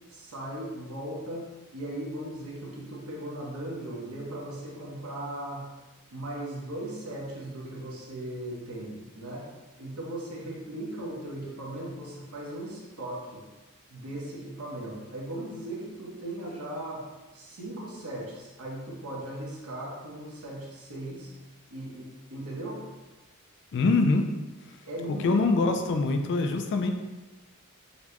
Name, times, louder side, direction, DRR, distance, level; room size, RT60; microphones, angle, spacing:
voice 1, 0.1-1.5 1.7-5.7 6.1-9.5 9.8-13.4 13.9-21.3 21.7-22.8 24.8-25.8, right 1 dB, 75° right, -4 dB, 0.9 m, -38 dB
voice 2, 23.7-24.3 25.1-26.9, left 3 dB, 55° left, 6 dB, 0.3 m, -24 dB
4.0 x 2.1 x 2.9 m, 1.2 s
head